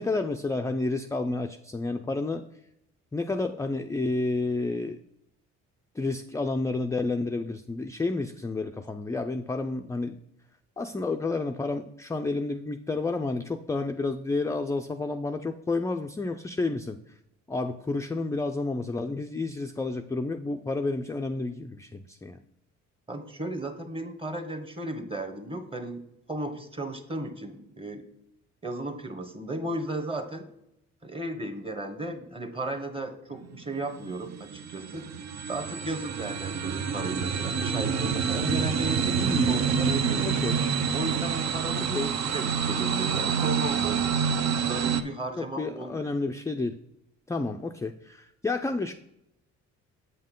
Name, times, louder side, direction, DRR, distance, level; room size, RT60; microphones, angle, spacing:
voice 1, 0.0-2.4 3.1-5.0 6.0-10.2 10.8-17.0 17.5-22.4 39.2-39.5 40.2-40.6 41.9-42.1 45.4-46.8 47.3-48.9, left 3 dB, 10° left, 5 dB, 0.3 m, -30 dB
voice 2, 23.1-26.0 26.3-28.0 28.6-30.5 31.0-35.1 35.5-40.3 40.9-44.1 44.6-46.0, right 2 dB, 20° right, 6 dB, 1.1 m, -35 dB
sound 1, 33.4-45.0, right 6 dB, 60° right, 0.6 m, -27 dB
7.8 x 5.4 x 3.7 m, 0.81 s
cardioid pair, 90°, 30 cm